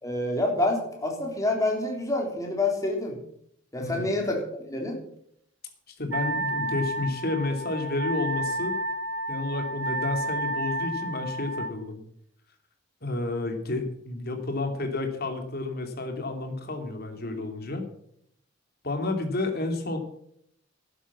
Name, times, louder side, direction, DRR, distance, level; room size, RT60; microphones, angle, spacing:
voice 1, 0.0-3.2 3.7-4.4 4.7-5.0, left 2 dB, 15° left, 1 dB, 3.5 m, -27 dB
voice 2, 6.0-8.7 9.3-12.0 13.0-17.8 18.8-20.0, left 2 dB, 50° left, 4 dB, 2.8 m, -30 dB
Wind instrument woodwind instrument, 6.1-11.7, right 1 dB, 65° right, 1.3 m, -31 dB
12.5 x 9.9 x 7.3 m, 0.70 s
head